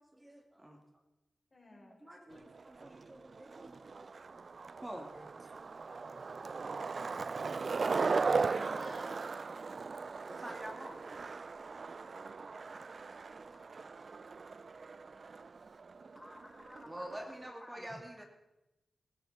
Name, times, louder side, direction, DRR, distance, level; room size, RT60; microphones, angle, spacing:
voice 1, 0.1-0.8 1.7-4.4 4.8-5.1 5.8-6.8 7.5-7.7 10.1-11.0 12.5-13.3 16.8-18.3, right 1 dB, 15° right, 3 dB, 2.7 m, -49 dB
voice 2, 1.5-2.5 2.8-3.1 5.1-5.2 8.2-9.3, left 1 dB, 40° left, 0 dB, 5.1 m, -52 dB
Skateboard, 2.3-17.5, right 4 dB, 60° right, 0.4 m, -38 dB
voice 3, 13.3-13.7 16.1-18.0, left 1 dB, 15° left, 5 dB, 1.3 m, -54 dB
19.5 x 13.5 x 4.3 m, 0.92 s
cardioid pair, 50°, 0 cm